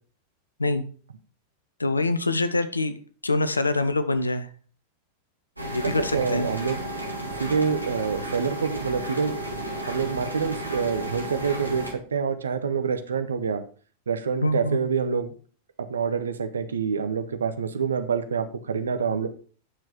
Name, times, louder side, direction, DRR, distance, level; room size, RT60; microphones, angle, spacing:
voice 1, 1.8-2.9 3.2-4.5 5.6-6.5 14.4-14.8, left 2 dB, 80° left, 12 dB, 0.9 m, -25 dB
sound 1, 5.6-11.9, right 1 dB, 85° right, 2.0 m, -33 dB
voice 2, 5.8-6.8 7.4-9.4 9.9-13.6 14.1-15.3 15.9-19.3, right 6 dB, 70° right, 9 dB, 1.0 m, -26 dB
9.5 x 6.2 x 5.0 m, 0.41 s
figure-of-eight pair, 90°, 0 cm